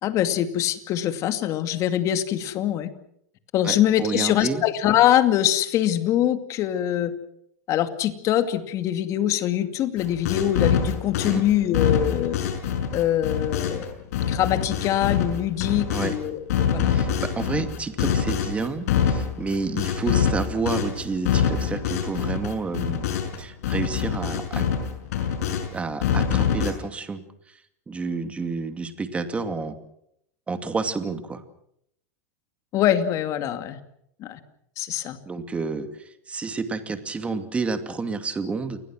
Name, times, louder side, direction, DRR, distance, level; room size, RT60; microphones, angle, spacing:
voice 1, 0.0-2.9 3.5-7.1 7.7-12.4 12.9-14.0 14.3-16.9 32.7-33.8 34.2-34.4 34.8-35.2, left 11 dB, 40° left, 9 dB, 2.4 m, -23 dB
voice 2, 3.6-4.6 11.2-11.4 15.9-16.1 16.9-23.1 23.4-24.7 25.7-27.6 27.9-29.8 30.5-31.4 35.3-38.8, right 4 dB, 15° right, 8 dB, 2.5 m, -30 dB
sound 1, 10.0-16.2 16.5-23.4 23.6-25.7 26.0-26.7, left 8 dB, 70° left, 6.5 m, -25 dB
29.0 x 21.0 x 6.3 m, 0.74 s
supercardioid pair, 130°, 9 cm